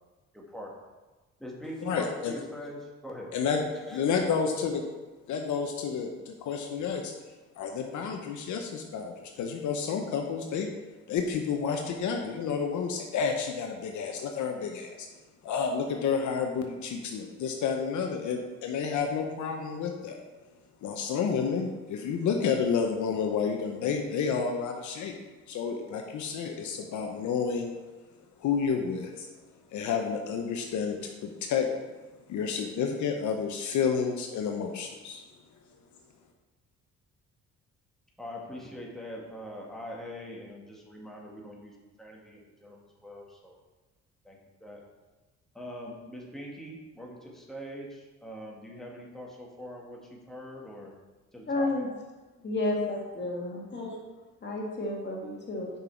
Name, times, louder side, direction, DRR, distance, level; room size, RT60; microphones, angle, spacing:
voice 1, 0.3-0.8 1.4-3.3 3.8-4.0 38.2-43.5 44.2-44.8 45.5-50.9 51.3-51.8, equal, ahead, -3 dB, 1.6 m, -43 dB
voice 2, 1.8-2.3 3.3-3.6 3.9-4.8 5.3-7.1 7.6-10.7 11.1-15.1 15.4-20.2 20.8-25.1 25.5-27.7 28.4-29.3 29.7-31.7 32.3-35.2, left 6 dB, 75° left, 3 dB, 0.8 m, -30 dB
voice 3, 51.5-51.9 52.4-53.9 54.4-55.7, left 2 dB, 35° left, -2 dB, 2.0 m, -31 dB
6.0 x 5.4 x 4.4 m, 1.2 s
cardioid pair, 90°, 30 cm